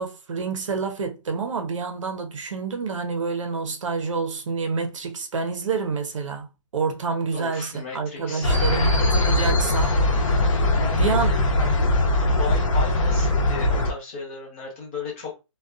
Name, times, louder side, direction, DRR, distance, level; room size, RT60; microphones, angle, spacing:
voice 1, 0.0-6.5 6.7-10.0 11.0-11.3, right 4 dB, 70° right, 0.6 m, -28 dB
voice 2, 7.3-9.0 10.8-11.9 12.4-15.4, left 4 dB, 25° left, 0.9 m, -35 dB
sound 1, 8.4-13.9, left 1 dB, 75° left, 0.8 m, -21 dB
2.4 x 2.2 x 2.4 m
hypercardioid pair, 175°, 17 cm